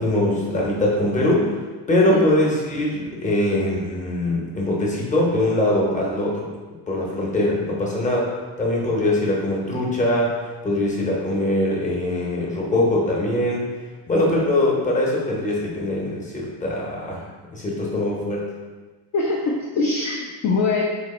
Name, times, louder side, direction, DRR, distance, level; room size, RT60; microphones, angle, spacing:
voice 1, 0.0-1.5 1.9-6.4 6.9-8.3 8.6-10.3 10.6-13.6 14.1-17.2 17.5-18.5, left 1 dB, 15° left, -3 dB, 0.9 m, -22 dB
voice 2, 19.1-20.9, left 3 dB, 40° left, -2 dB, 0.4 m, -23 dB
3.1 x 2.8 x 4.2 m, 1.3 s
cardioid pair, 135°, 45 cm